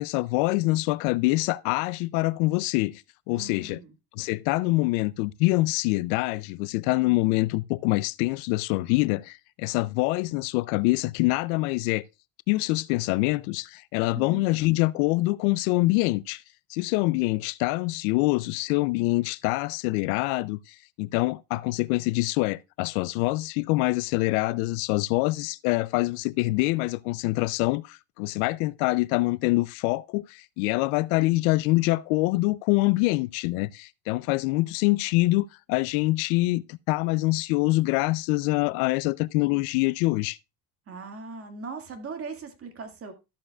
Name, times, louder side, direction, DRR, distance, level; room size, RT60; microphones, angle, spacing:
voice 1, 0.0-3.0 3.3-3.8 4.1-12.0 12.5-16.4 16.7-40.4, left 21 dB, 85° left, 0.6 m, -25 dB
voice 2, 3.3-3.9 14.1-14.4 40.9-43.1, right 4 dB, 30° right, 1.9 m, -39 dB
13.5 x 7.3 x 2.3 m
cardioid pair, 125°, 42 cm